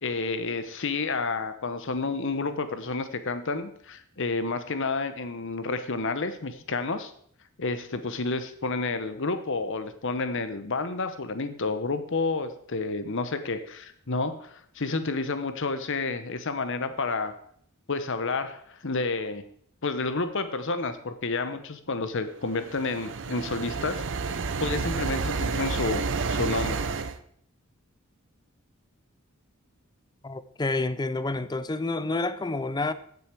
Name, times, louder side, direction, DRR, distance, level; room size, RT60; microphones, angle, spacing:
voice 1, 0.0-7.1 7.6-17.3 17.9-19.4 19.8-24.0 24.6-26.0 26.3-26.9, left 3 dB, 60° left, 1.0 m, -30 dB
sound 1, 22.5-27.2, right 4 dB, 55° right, 0.7 m, -30 dB
voice 2, 30.2-32.9, left 2 dB, 20° left, 0.5 m, -29 dB
15.0 x 6.8 x 4.7 m
head